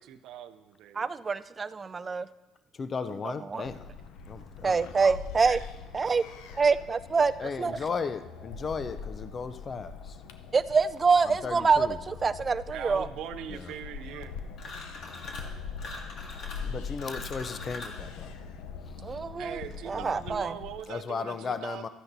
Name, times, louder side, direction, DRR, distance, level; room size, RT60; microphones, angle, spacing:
voice 1, 0.0-1.2 12.7-14.3 19.4-21.9, right 10 dB, 70° right, 11 dB, 0.6 m, -41 dB
voice 2, 1.0-2.3 3.2-3.7 4.6-5.6 5.9-6.2 6.5-7.8 10.5-13.1 19.0-19.6 19.9-20.6, right 5 dB, 30° right, 14 dB, 0.4 m, -26 dB
voice 3, 2.8-3.9 4.3-4.8 7.4-10.2 11.3-12.0 13.5-13.6 16.6-18.3 19.9-20.2 20.9-21.9, left 5 dB, 35° left, 10 dB, 0.5 m, -35 dB
sound 1, 3.7-20.8, left 5 dB, 85° left, 0.6 m, -42 dB
sound 2, 14.6-15.5 15.8-18.0, left 2 dB, 60° left, 2.1 m, -42 dB
13.5 x 9.8 x 2.7 m, 1.1 s
supercardioid pair, 90°, 0 cm